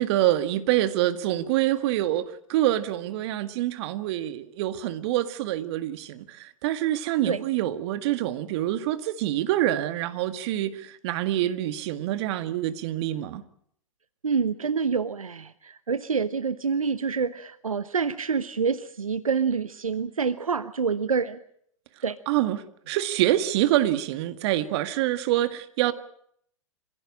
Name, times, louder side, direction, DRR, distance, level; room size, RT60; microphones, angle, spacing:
voice 1, 0.0-13.4 22.3-25.9, right 13 dB, 50° right, 1.9 m, -26 dB
voice 2, 14.2-21.4 22.0-22.2, right 5 dB, 85° right, 1.0 m, -27 dB
26.5 x 16.5 x 8.8 m
hypercardioid pair, 105°, 17 cm